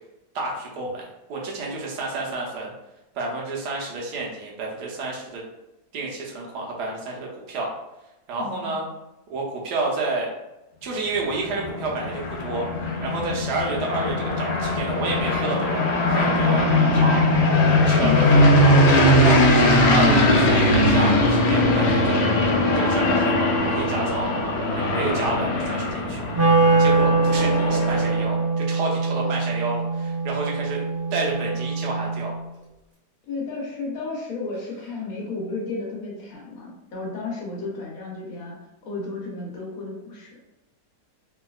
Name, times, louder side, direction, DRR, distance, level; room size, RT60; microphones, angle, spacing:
voice 1, 0.3-1.0 1.3-2.7 3.1-5.4 5.9-7.7 8.3-8.8 9.3-10.3 10.8-16.7 16.9-17.2 17.9-19.4 19.9-22.2 22.7-24.3 24.7-26.3 26.8-30.8 31.1-32.3, right 3 dB, 85° right, -2 dB, 1.4 m, -29 dB
voice 2, 8.4-8.8 18.0-18.3 33.3-38.6 38.8-40.3, left 4 dB, 65° left, -2 dB, 1.2 m, -32 dB
sound 1, 11.2-28.4, left 1 dB, 85° left, 1.2 m, -20 dB
Wind instrument woodwind instrument, 26.3-32.4, right 3 dB, 40° right, 1.3 m, -22 dB
3.1 x 2.8 x 2.3 m, 0.98 s
omnidirectional pair, 1.7 m